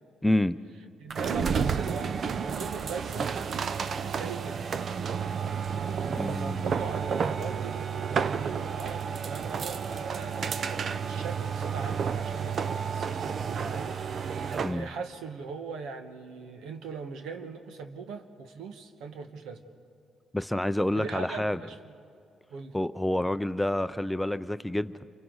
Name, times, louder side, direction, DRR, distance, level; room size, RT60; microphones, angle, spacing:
voice 1, 0.2-0.6 6.0-6.7 14.6-14.9 20.3-21.6 22.7-25.1, left 1 dB, 5° left, 0.5 m, -28 dB
voice 2, 1.0-3.3 3.8-4.7 5.7-19.6 21.0-21.9 22.5-22.8, right 5 dB, 85° right, 1.3 m, -40 dB
sound 1, 1.1-14.8, right 6 dB, 55° right, 0.6 m, -31 dB
29.5 x 24.0 x 4.0 m
cardioid pair, 90°, 0 cm